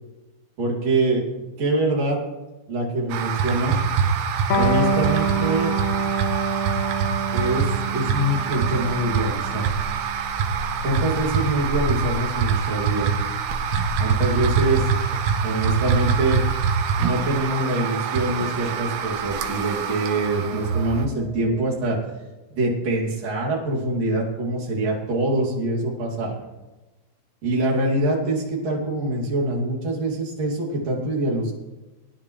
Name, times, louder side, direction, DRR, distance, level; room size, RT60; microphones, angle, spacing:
voice 1, 0.6-1.2 1.6-2.2 2.7-3.8 4.5-5.8 7.3-7.6 7.9-9.7 10.8-13.1 14.0-14.8 15.4-16.4 17.0-22.0 22.5-26.4 27.4-31.5, right 1 dB, 40° right, -4 dB, 2.8 m, -24 dB
sound 1, 3.1-21.1, right 6 dB, 80° right, 3.3 m, -25 dB
Electric guitar, 4.5-11.7, right 4 dB, 85° left, 3.8 m, -27 dB
sound 2, 17.3-22.5, right 1 dB, 35° left, 5.1 m, -43 dB
21.0 x 10.5 x 3.2 m, 1.1 s
omnidirectional pair, 5.7 m